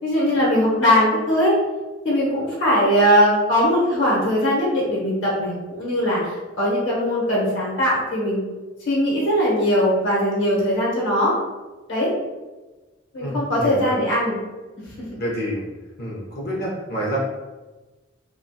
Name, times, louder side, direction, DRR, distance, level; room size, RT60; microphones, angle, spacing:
voice 1, 0.0-1.5 2.0-8.5 8.9-11.4 11.9-12.1 13.1-14.4 15.0-15.1, equal, 75° left, -6 dB, 0.9 m, -20 dB
voice 2, 13.2-14.0 15.2-15.7 16.0-17.2, equal, 50° left, -3 dB, 0.5 m, -28 dB
2.2 x 2.2 x 2.6 m, 1.2 s
head